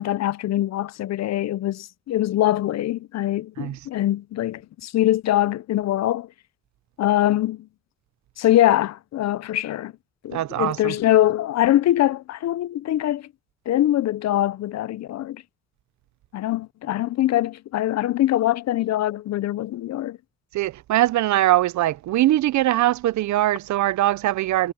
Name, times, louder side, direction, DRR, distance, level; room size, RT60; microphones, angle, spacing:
voice 1, 0.0-6.3 7.0-7.7 8.4-9.9 10.2-13.2 13.7-15.4 16.3-20.2, left 13 dB, 60° left, 0.6 m, -23 dB
voice 2, 10.3-10.9 20.5-24.7, right 15 dB, 70° right, 0.7 m, -21 dB
cardioid pair, 90°, 30 cm